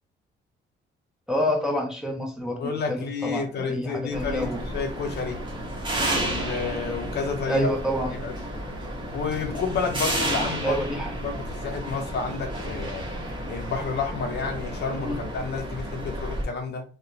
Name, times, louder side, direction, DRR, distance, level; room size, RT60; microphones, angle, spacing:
voice 1, 1.3-4.6 7.5-8.2 10.6-11.1 14.9-15.2, equal, 5° right, 0 dB, 0.7 m, -28 dB
voice 2, 2.6-5.4 6.2-7.7 8.2-8.3 9.1-10.8 11.2-13.0 13.5-16.8, left 5 dB, 60° left, 4 dB, 0.6 m, -30 dB
sound 1, 4.1-16.4, right 1 dB, 25° right, 1.0 m, -32 dB
2.8 x 2.1 x 2.6 m, 0.37 s
cardioid pair, 90°, 20 cm